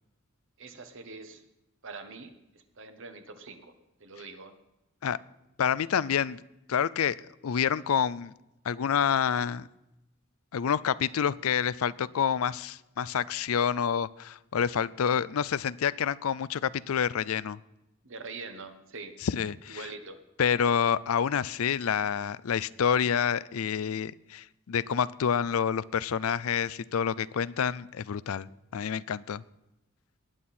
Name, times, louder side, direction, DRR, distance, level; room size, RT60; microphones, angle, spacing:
voice 1, 0.6-1.4 1.8-3.7 4.0-4.5 18.0-19.1 19.7-20.2, right 3 dB, 60° right, 8 dB, 1.4 m, -44 dB
voice 2, 5.6-6.4 6.7-7.2 7.4-8.3 8.6-9.7 10.5-17.6 19.2-19.8 20.4-28.5 28.7-29.4, left 7 dB, 70° left, 19 dB, 0.4 m, -28 dB
19.0 x 9.1 x 4.4 m, 0.92 s
head